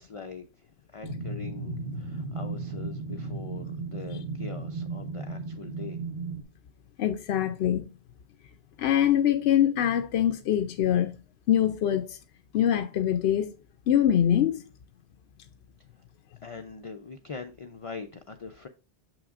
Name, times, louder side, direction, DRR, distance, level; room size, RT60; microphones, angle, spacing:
voice 1, 0.0-6.0 16.4-18.7, left 5 dB, 40° left, 0.5 m, -42 dB
sound 1, 1.0-6.4, right 3 dB, 70° right, 1.3 m, -35 dB
voice 2, 7.0-7.9 8.8-11.1 11.5-12.2 12.5-13.5 13.9-14.6, left 10 dB, 80° left, 0.8 m, -24 dB
7.1 x 6.0 x 2.4 m
omnidirectional pair, 1.1 m